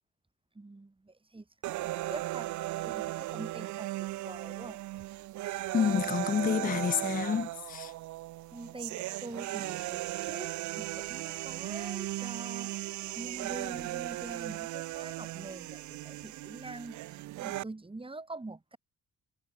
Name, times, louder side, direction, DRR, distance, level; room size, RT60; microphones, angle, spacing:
voice 1, 0.5-4.8 8.5-12.7 13.1-17.0 17.4-18.8, right 2 dB, 15° right, 4.8 m, -45 dB
sound 1, 1.6-17.6, right 17 dB, 75° right, 0.5 m, -37 dB
voice 2, 5.7-7.9, left 7 dB, 30° left, 0.5 m, -29 dB
cardioid pair, 90°, 30 cm